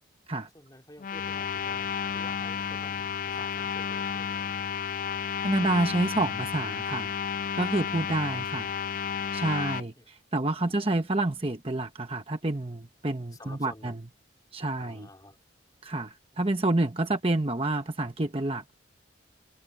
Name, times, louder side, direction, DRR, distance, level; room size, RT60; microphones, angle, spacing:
voice 1, 0.5-4.6 7.9-8.4 9.6-10.1 10.6-10.8 13.3-14.0 14.8-15.4 16.3-16.5, left 1 dB, 20° left, 4.5 m, -51 dB
sound 1, 1.0-9.8, left 7 dB, 40° left, 0.3 m, -32 dB
voice 2, 5.4-7.2 7.6-8.7 9.3-13.9 14.5-15.1 15.8-18.7, right 2 dB, 30° right, 1.0 m, -28 dB
head